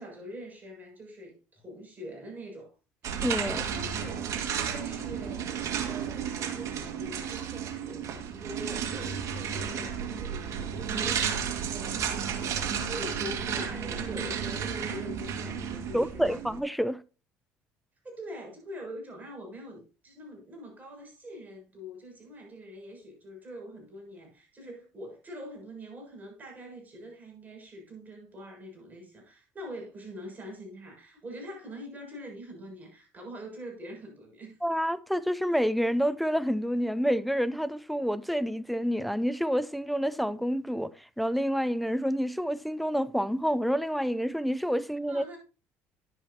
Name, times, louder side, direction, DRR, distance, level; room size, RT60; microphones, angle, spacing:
voice 1, 0.0-2.7 3.1-4.4 4.7-12.0 12.2-16.3 18.0-34.6 45.1-45.4, equal, 30° right, 6.9 m, -44 dB
sound 1, 3.0-16.6, right 7 dB, 55° right, 2.0 m, -33 dB
voice 2, 3.2-3.6 15.9-17.0 34.6-40.9 41.2-45.2, equal, ahead, 0.6 m, -28 dB
11.0 x 10.5 x 2.9 m
supercardioid pair, 80°, 6 cm